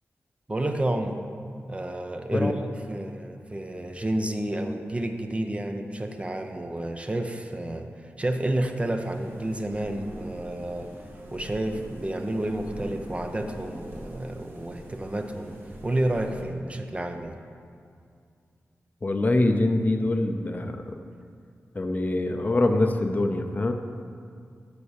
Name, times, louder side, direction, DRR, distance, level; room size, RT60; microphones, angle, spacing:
voice 1, 0.5-1.2 1.7-10.9 11.3-15.5 15.8-17.4, right 1 dB, 25° right, 5 dB, 0.6 m, -30 dB
sound 1, 9.0-16.4, equal, 45° right, 1.7 m, -43 dB
voice 2, 19.0-21.0 21.7-23.7, left 2 dB, 35° left, 6 dB, 0.6 m, -24 dB
8.2 x 6.2 x 6.5 m, 2.3 s
wide cardioid pair, 100°, 5 cm